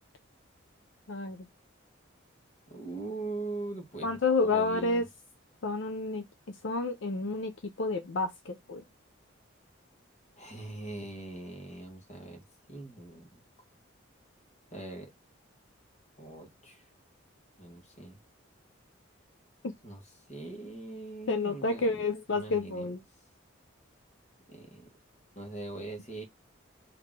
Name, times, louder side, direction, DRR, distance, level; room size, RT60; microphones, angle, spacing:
voice 1, 2.7-5.0 10.4-12.4 12.7-13.4 14.7-15.1 16.2-16.8 17.6-18.2 19.8-20.0 20.3-22.0 22.3-22.9 24.5-24.9 25.3-26.2, right 2 dB, 35° left, 1.4 m, -41 dB
voice 2, 4.0-5.0 5.6-6.2 6.6-7.5 7.8-8.8 19.6-19.7 21.3-23.0, left 3 dB, 70° left, 0.6 m, -29 dB
3.7 x 2.8 x 3.6 m
head